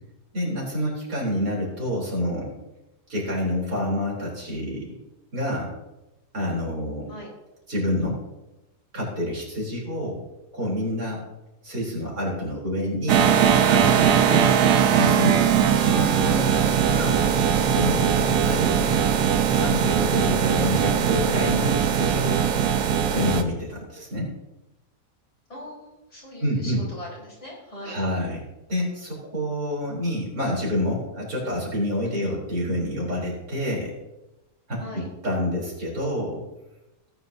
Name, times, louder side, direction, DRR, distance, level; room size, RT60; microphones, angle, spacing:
voice 1, 0.3-2.5 3.1-4.9 5.3-5.7 6.3-7.1 7.7-8.2 8.9-10.2 10.5-11.2 11.6-13.3 13.7-14.6 15.0-15.5 15.8-17.2 17.7-18.9 19.5-22.4 23.1-24.3 26.4-26.8 27.8-28.4 28.7-33.9 34.7-36.4, left 1 dB, 60° right, -4 dB, 4.3 m, -28 dB
sound 1, 13.1-23.4, right 8 dB, 85° right, 1.4 m, -20 dB
voice 2, 25.5-28.0 32.0-32.3 34.8-35.0, left 1 dB, 45° left, -6 dB, 5.1 m, -40 dB
18.0 x 9.7 x 2.8 m, 0.97 s
omnidirectional pair, 1.7 m